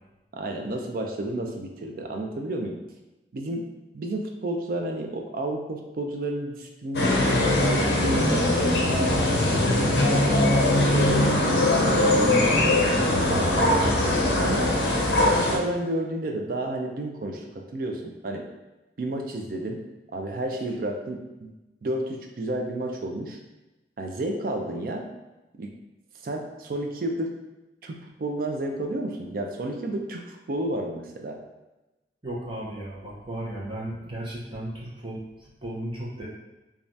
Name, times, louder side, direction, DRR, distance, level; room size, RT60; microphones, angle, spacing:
voice 1, 0.3-2.8 3.3-3.7 3.9-8.8 9.2-11.4 11.8-12.9 13.3-14.7 15.3-18.5 19.0-19.8 20.1-21.5 21.8-23.4 24.0-25.0 25.6-25.7 26.2-27.3 27.8-31.4, right 1 dB, 50° right, 3 dB, 0.4 m, -31 dB
sound 1, 6.9-15.6, left 1 dB, 65° left, 0.5 m, -21 dB
voice 2, 32.2-36.2, right 1 dB, 25° right, -6 dB, 0.7 m, -35 dB
3.2 x 2.3 x 2.6 m, 1.0 s
head